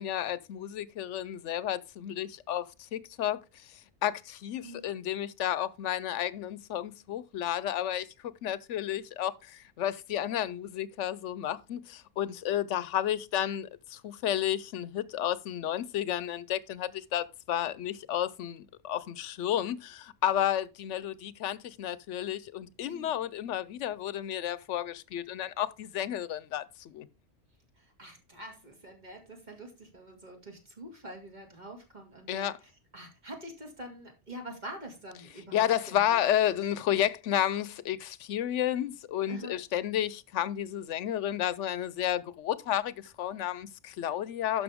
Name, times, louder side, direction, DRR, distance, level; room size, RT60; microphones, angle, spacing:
voice 1, 0.0-8.1 8.4-27.1 32.3-32.6 35.5-44.6, left 11 dB, 85° left, 1.0 m, -32 dB
voice 2, 22.9-23.2 27.8-36.2 39.3-39.6, right 1 dB, 40° right, 2.3 m, -46 dB
12.0 x 5.8 x 3.5 m
omnidirectional pair, 1.2 m